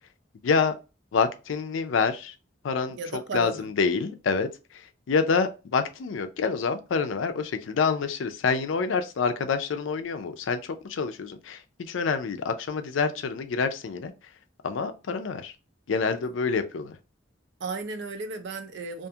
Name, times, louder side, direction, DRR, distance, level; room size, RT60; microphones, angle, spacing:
voice 1, 0.4-0.7 1.1-2.3 2.6-3.0 3.3-14.1 14.6-15.5 15.9-17.0, left 5 dB, 75° left, 0.4 m, -27 dB
voice 2, 2.9-3.7 17.6-19.1, right 4 dB, 65° right, 0.5 m, -34 dB
2.5 x 2.3 x 2.7 m
head